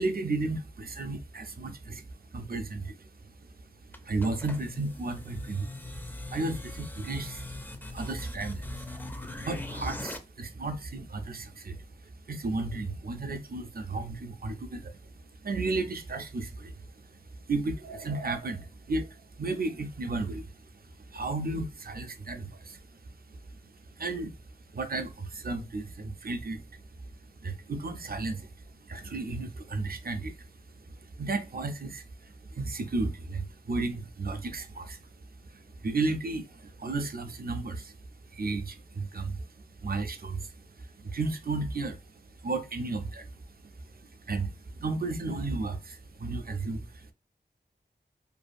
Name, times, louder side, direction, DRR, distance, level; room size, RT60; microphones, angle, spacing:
voice 1, 0.0-9.1 9.4-15.1 15.4-23.6 23.9-24.3 24.7-35.1 35.4-38.0 38.3-39.5 39.7-43.5 43.8-47.1, right 3 dB, 55° right, 0.5 m, -34 dB
sound 1, 3.9-10.2, left 2 dB, 10° left, 0.4 m, -41 dB
2.6 x 2.3 x 2.5 m
wide cardioid pair, 40°, 19 cm